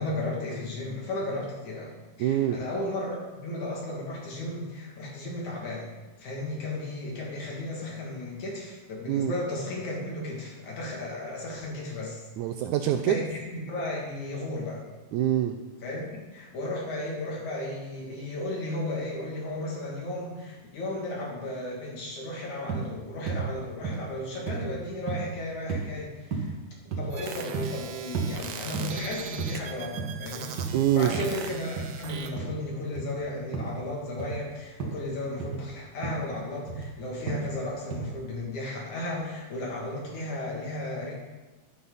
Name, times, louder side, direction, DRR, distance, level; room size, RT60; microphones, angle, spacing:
voice 1, 0.0-3.2 3.4-5.9 6.2-12.2 13.0-14.8 15.8-26.5 27.0-41.1, left 1 dB, 60° left, -3 dB, 3.7 m, -34 dB
voice 2, 2.2-2.6 9.1-9.3 12.4-13.2 15.1-15.6 30.7-31.1, right 11 dB, 90° right, 6 dB, 1.7 m, -25 dB
sound 1, 22.7-22.9 23.3-23.5 23.8-24.1 24.5-24.7 25.1-25.3 25.7-25.9 26.3-26.6 26.9-27.2 27.5-27.7 28.1-28.3 28.7-29.0 29.4-29.6 29.8-30.2 30.6-30.8 31.1-31.3 31.8-31.9 32.4-32.6 32.9-33.1 33.5-33.8 34.2-34.4 34.8-35.0 35.4-35.6 36.0-36.2 36.7-36.9 37.3-37.5 37.9-38.1, right 5 dB, 45° right, 1.5 m, -32 dB
sound 2, 27.1-32.3, right 7 dB, 75° right, 2.1 m, -40 dB
11.5 x 11.5 x 4.1 m, 1.2 s
omnidirectional pair, 4.0 m